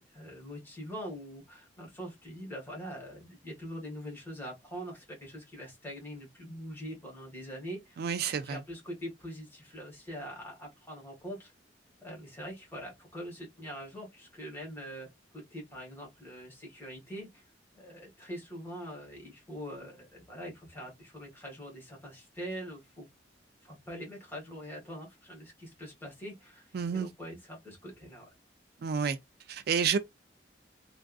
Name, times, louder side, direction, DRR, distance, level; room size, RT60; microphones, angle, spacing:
voice 1, 0.0-8.0 8.4-11.5 12.0-17.4 17.7-23.1 23.6-28.3, equal, 10° left, 1.7 m, -43 dB
voice 2, 8.0-8.6 26.7-27.1 28.8-29.2 29.5-30.0, right 6 dB, 60° right, 0.3 m, -29 dB
3.4 x 2.4 x 2.3 m
head